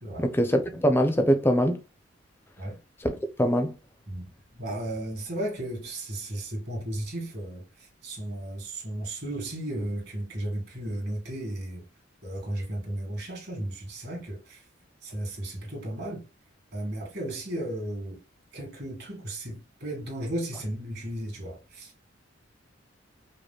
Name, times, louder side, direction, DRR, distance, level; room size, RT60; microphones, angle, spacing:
voice 1, 0.3-1.8 3.0-3.7, equal, 10° left, 0.5 m, -23 dB
voice 2, 4.5-11.8 12.2-14.6 15.0-16.2 16.7-18.2 18.5-22.1, right 1 dB, 55° right, 2.0 m, -34 dB
5.0 x 2.1 x 2.3 m
head